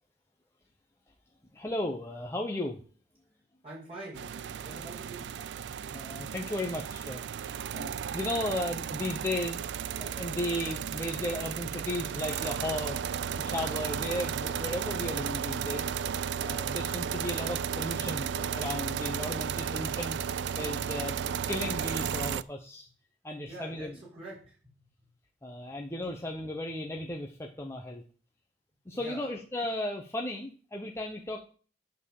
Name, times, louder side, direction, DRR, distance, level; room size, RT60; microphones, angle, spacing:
voice 1, 1.5-2.8 5.9-9.7 10.0-15.9 16.4-22.9 23.2-23.9 25.4-28.0 28.9-31.4, left 1 dB, 15° left, 0 dB, 0.9 m, -35 dB
voice 2, 3.6-5.2 23.4-24.6 28.9-29.3, right 2 dB, 35° right, -6 dB, 4.9 m, -45 dB
sound 1, 4.1-22.4, right 8 dB, 75° right, 0.4 m, -34 dB
10.0 x 4.5 x 7.1 m, 0.40 s
head